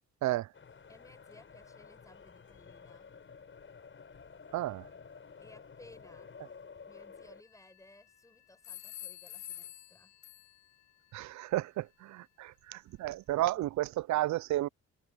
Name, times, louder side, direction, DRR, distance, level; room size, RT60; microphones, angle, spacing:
sound 1, 0.5-7.4, left 5 dB, 40° left, 6.3 m, -52 dB
voice 1, 0.9-3.1 5.4-6.3 6.8-10.1, left 1 dB, 10° left, 7.4 m, -59 dB
voice 2, 4.5-4.8 11.1-14.7, right 15 dB, 70° right, 0.5 m, -32 dB
sound 2, 7.4-8.1 8.6-10.8, left 12 dB, 75° left, 6.2 m, -48 dB
cardioid pair, 90°, 30 cm